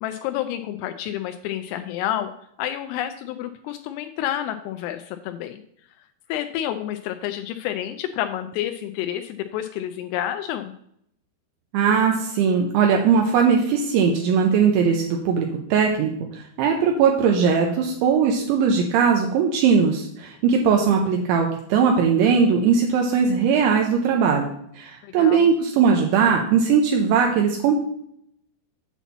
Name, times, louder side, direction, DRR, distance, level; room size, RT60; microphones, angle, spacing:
voice 1, 0.0-2.3 2.6-5.6 6.3-10.7 25.0-25.5, left 11 dB, 85° left, 7 dB, 3.1 m, -29 dB
voice 2, 11.7-24.5 24.8-27.8, right 6 dB, 85° right, 1 dB, 2.8 m, -19 dB
8.2 x 4.3 x 7.1 m, 0.70 s
omnidirectional pair, 5.9 m